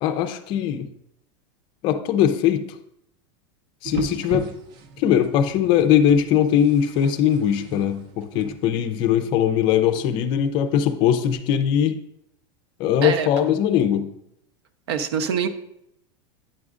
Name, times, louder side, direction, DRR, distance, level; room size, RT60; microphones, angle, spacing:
voice 1, 0.0-0.9 1.8-2.6 3.8-4.5 5.0-12.0 12.8-14.1, left 9 dB, 35° left, 9 dB, 0.5 m, -20 dB
sound 1, 3.8-11.3, right 4 dB, 35° right, 0.5 m, -38 dB
voice 2, 13.0-13.5 14.9-15.5, right 7 dB, 85° right, 10 dB, 0.7 m, -25 dB
8.6 x 6.1 x 2.4 m, 0.77 s
supercardioid pair, 160°, 13 cm